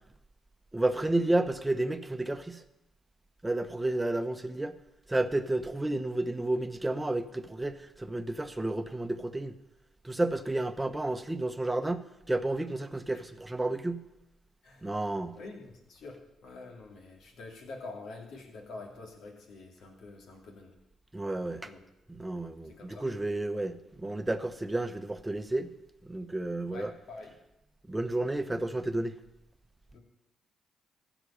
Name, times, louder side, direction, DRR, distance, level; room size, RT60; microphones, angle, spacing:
voice 1, 0.7-2.6 3.4-4.7 5.1-9.5 10.0-14.0 14.8-15.4 21.1-21.7 22.1-25.7 26.0-26.9 27.9-29.1, right 2 dB, 15° right, 1.0 m, -31 dB
voice 2, 15.3-20.7 21.6-21.8 22.6-23.1 26.7-27.4 29.9-30.0, left 3 dB, 65° left, 2.5 m, -46 dB
15.0 x 5.1 x 8.7 m
hypercardioid pair, 50°, 0 cm